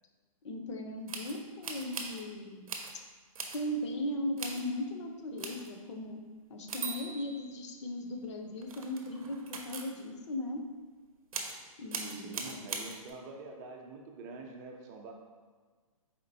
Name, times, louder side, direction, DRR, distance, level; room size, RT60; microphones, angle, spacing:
voice 1, 0.4-2.7 3.5-6.2 6.5-10.6 11.8-12.6, left 1 dB, 55° left, 5 dB, 0.6 m, -38 dB
sound 1, 1.1-2.3 2.7-2.9 3.4-3.6 4.4-4.6 5.4-5.7 6.7-8.1 8.6-9.9 11.3-11.6 11.9-13.1, right 5 dB, 70° right, 0.7 m, -40 dB
voice 2, 12.1-15.1, right 3 dB, 30° right, 1 dB, 0.6 m, -46 dB
4.3 x 3.8 x 2.7 m, 1.4 s
hypercardioid pair, 140°, 18 cm